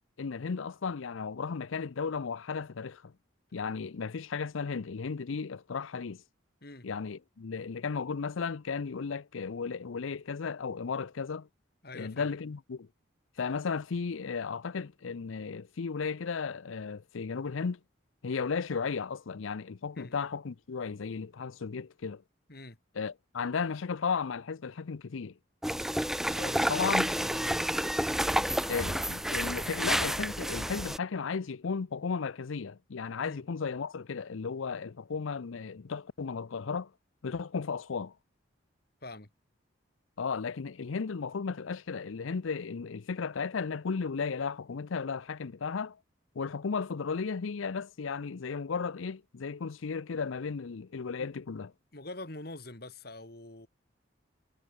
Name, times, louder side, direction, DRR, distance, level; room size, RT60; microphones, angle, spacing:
voice 1, 0.2-3.1 3.5-6.2 6.8-11.5 11.9-12.9 13.4-17.8 18.2-22.2 22.9-25.3 26.7-27.1 28.7-36.9 37.2-38.1 40.2-46.0 46.4-51.7, left 5 dB, 85° left, 0.6 m, -35 dB
voice 2, 11.8-12.4 20.0-20.2 22.5-22.8 26.2-27.7 33.2-33.4 39.0-39.3 51.2-51.3 51.9-53.7, left 2 dB, 50° left, 2.4 m, -45 dB
sound 1, 25.6-31.0, equal, ahead, 0.7 m, -30 dB
head